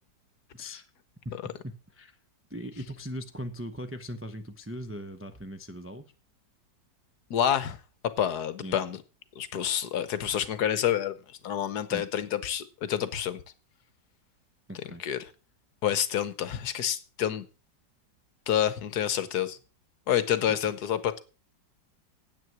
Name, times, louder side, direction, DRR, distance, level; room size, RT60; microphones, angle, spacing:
voice 1, 0.5-0.8 1.2-2.2 2.5-6.1 8.6-8.8 11.9-12.0 14.7-15.0 20.5-20.6, equal, 20° right, 0.3 m, -39 dB
voice 2, 7.3-7.8 8.2-9.0 9.4-11.1 11.4-13.4 15.0-15.2 15.8-17.4 18.5-19.6 20.1-21.2, left 10 dB, 65° left, 1.4 m, -28 dB
9.5 x 8.6 x 5.9 m
omnidirectional pair, 2.0 m